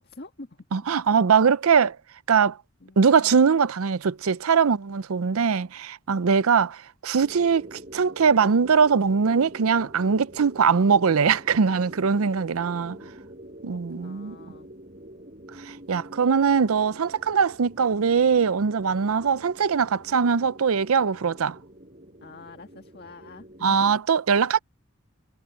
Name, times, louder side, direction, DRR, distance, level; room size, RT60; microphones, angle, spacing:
voice 1, 0.0-0.7 2.8-3.5 6.1-6.5 12.2-12.4 12.8-13.1 13.6-14.7 22.2-23.9, left 2 dB, 45° left, 1.8 m, -47 dB
voice 2, 0.7-2.0 2.3-2.6 3.0-13.0 13.6-14.4 15.6-21.6 23.6-24.6, right 6 dB, 75° right, 0.5 m, -21 dB
sound 1, 7.2-24.0, right 1 dB, 35° right, 5.9 m, -46 dB
head